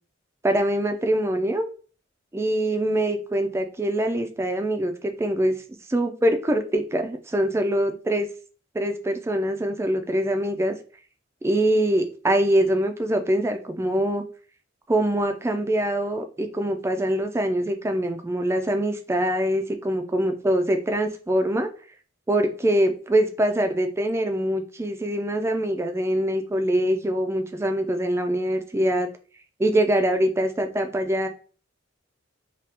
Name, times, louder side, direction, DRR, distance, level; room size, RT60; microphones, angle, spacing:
voice 1, 0.4-1.7 2.3-5.6 5.9-8.3 8.7-10.7 11.4-14.2 14.9-21.7 22.3-29.1 29.6-31.3, right 1 dB, 15° right, 6 dB, 0.3 m, -24 dB
2.8 x 2.4 x 3.3 m, 0.39 s
head